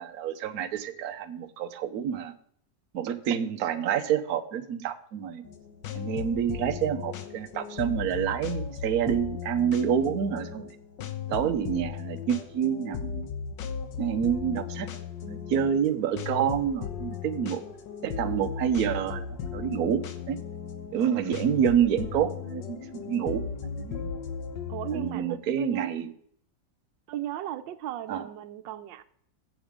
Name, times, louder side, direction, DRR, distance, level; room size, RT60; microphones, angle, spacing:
voice 1, 0.0-2.3 2.9-5.4 5.9-10.7 11.3-13.3 14.0-14.9 15.2-17.6 18.0-19.3 19.5-20.4 20.9-24.1 24.9-26.1 28.1-28.3, right 8 dB, 60° right, 8 dB, 1.2 m, -28 dB
sound 1, 5.4-25.1, left 7 dB, 80° left, 1.6 m, -37 dB
voice 2, 11.4-11.8 24.7-25.9 27.1-29.0, right 12 dB, 90° right, 11 dB, 1.4 m, -36 dB
14.5 x 8.0 x 3.7 m, 0.64 s
omnidirectional pair, 2.0 m